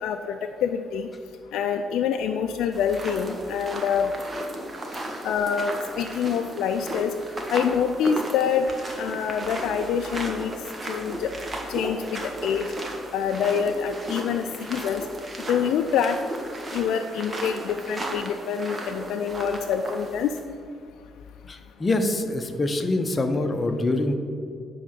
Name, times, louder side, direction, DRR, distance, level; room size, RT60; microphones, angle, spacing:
voice 1, 0.0-1.1 1.5-4.1 5.2-7.1 7.5-8.7 9.0-10.5 10.9-11.3 11.7-12.7 13.1-15.0 15.5-16.2 16.7-20.3, left 7 dB, 85° left, 5 dB, 0.4 m, -26 dB
sound 1, 2.7-20.4, right 1 dB, 30° right, 1.5 m, -35 dB
voice 2, 21.5-24.1, left 2 dB, 30° left, 5 dB, 0.9 m, -25 dB
9.9 x 3.8 x 6.7 m, 2.4 s
cardioid pair, 90°, 0 cm